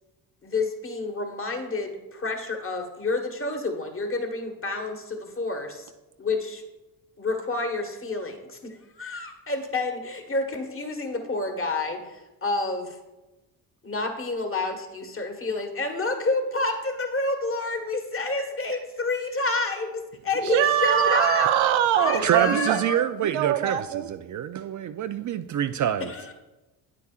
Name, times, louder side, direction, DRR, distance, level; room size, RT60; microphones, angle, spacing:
voice 1, 0.4-5.9 6.2-6.6 7.2-13.0 13.8-21.5 21.9-23.0 26.0-26.3, left 2 dB, 30° left, 4 dB, 1.5 m, -29 dB
voice 2, 20.4-22.8 23.2-24.1, right 10 dB, 85° right, 8 dB, 0.7 m, -22 dB
voice 3, 22.2-26.1, right 10 dB, 45° right, 10 dB, 0.4 m, -26 dB
9.2 x 8.4 x 2.4 m, 1.1 s
supercardioid pair, 70°, 45 cm